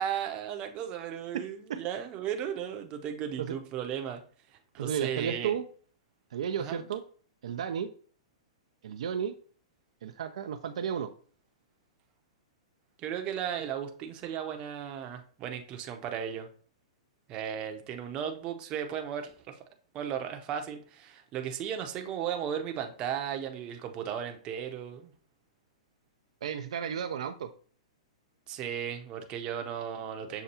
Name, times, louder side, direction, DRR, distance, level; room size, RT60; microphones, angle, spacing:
voice 1, 0.0-4.2 4.7-5.5 6.6-6.8 13.0-16.5 17.3-19.6 19.9-25.1 28.5-30.4, right 9 dB, 30° right, 5 dB, 0.7 m, -35 dB
voice 2, 4.8-5.6 6.3-7.0 7.4-7.9 8.8-9.3 10.0-11.1 26.4-27.5, right 8 dB, 70° right, 7 dB, 0.4 m, -33 dB
6.7 x 2.3 x 2.8 m, 0.43 s
hypercardioid pair, 135°, 3 cm